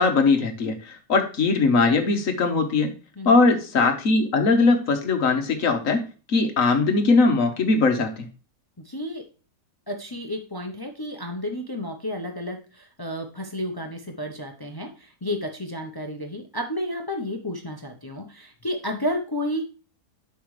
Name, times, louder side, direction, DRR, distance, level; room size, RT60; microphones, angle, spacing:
voice 1, 0.0-2.9 3.2-6.0 6.3-8.1, left 3 dB, 60° left, 5 dB, 1.4 m, -20 dB
voice 2, 8.8-9.2 9.9-19.7, left 1 dB, 30° left, 4 dB, 0.4 m, -31 dB
8.0 x 6.0 x 3.2 m, 0.34 s
omnidirectional pair, 1.7 m